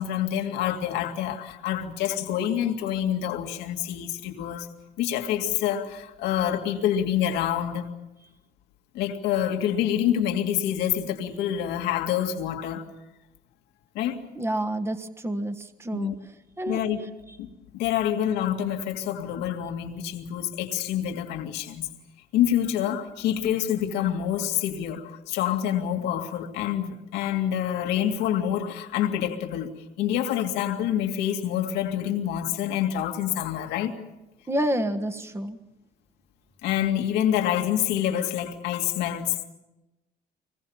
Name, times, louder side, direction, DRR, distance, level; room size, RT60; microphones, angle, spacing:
voice 1, 0.0-4.7 5.0-7.9 8.9-12.8 13.9-14.2 15.9-16.1 16.7-17.0 17.4-17.5 17.7-21.9 22.3-29.7 30.0-33.9 36.6-39.4, left 10 dB, 90° left, 2.3 m, -27 dB
voice 2, 14.4-16.1 16.6-16.8 34.5-35.6, right 1 dB, 15° right, 1.5 m, -28 dB
25.0 x 22.0 x 7.3 m
cardioid pair, 110°, 17 cm